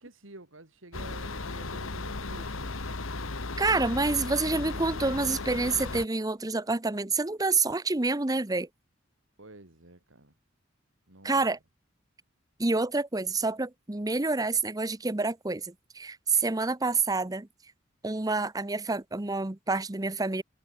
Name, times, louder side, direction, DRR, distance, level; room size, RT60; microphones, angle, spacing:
voice 1, 0.0-2.8 9.4-10.3 11.1-11.4, right 2 dB, 75° right, 3.1 m, -49 dB
sound 1, 0.9-6.0, left 3 dB, 90° left, 1.9 m, -35 dB
voice 2, 3.6-8.7 11.2-11.6 12.6-17.5 18.0-20.4, right 3 dB, 20° right, 0.8 m, -28 dB
head